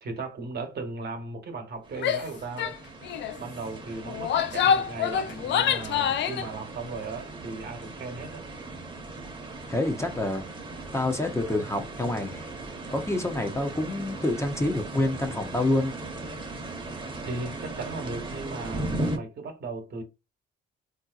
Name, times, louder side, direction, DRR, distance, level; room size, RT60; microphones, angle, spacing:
voice 1, 0.0-2.8 3.4-8.5 17.2-20.0, right 3 dB, 55° right, 1.1 m, -37 dB
sound 1, 1.8-19.2, right 2 dB, 25° right, 0.9 m, -38 dB
Female speech woman speaking / Yell, 2.0-2.3 2.6-2.8 3.0-3.4 4.0-6.5, left 8 dB, 65° left, 0.5 m, -26 dB
voice 2, 9.7-10.4 10.9-12.5 12.9-16.0, left 2 dB, 15° left, 0.7 m, -27 dB
3.5 x 2.7 x 2.4 m
cardioid pair, 90°, 20 cm